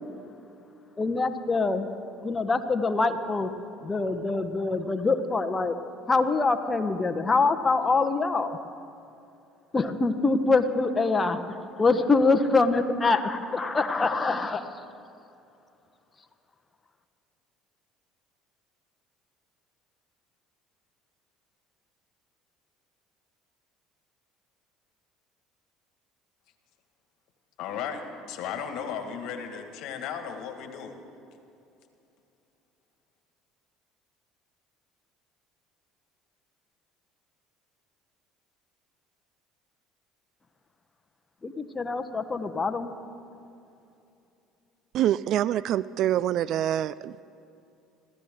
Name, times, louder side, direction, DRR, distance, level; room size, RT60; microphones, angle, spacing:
voice 1, 1.0-1.9 2.2-3.5 3.8-5.8 6.1-8.6 9.7-11.4 11.8-14.6 41.4-42.9, left 3 dB, 25° left, 8 dB, 1.2 m, -24 dB
voice 2, 27.6-31.0, left 7 dB, 65° left, 6 dB, 1.8 m, -35 dB
voice 3, 44.9-47.2, right 11 dB, 60° right, 19 dB, 0.3 m, -25 dB
26.0 x 14.5 x 3.8 m, 2.7 s
hypercardioid pair, 65°, 0 cm